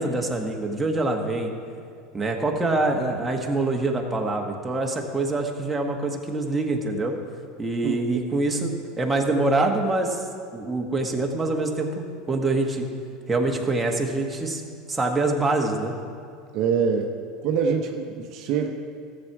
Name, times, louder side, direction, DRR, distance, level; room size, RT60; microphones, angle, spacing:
voice 1, 0.0-1.5 2.1-7.1 7.6-10.2 10.5-11.9 12.3-12.9 13.3-14.6 14.9-15.9, right 2 dB, 15° right, 1 dB, 1.4 m, -25 dB
voice 2, 16.5-17.1 17.4-18.7, right 6 dB, 55° right, 3 dB, 0.9 m, -24 dB
13.5 x 7.5 x 4.8 m, 2.3 s
hypercardioid pair, 95°, 0 cm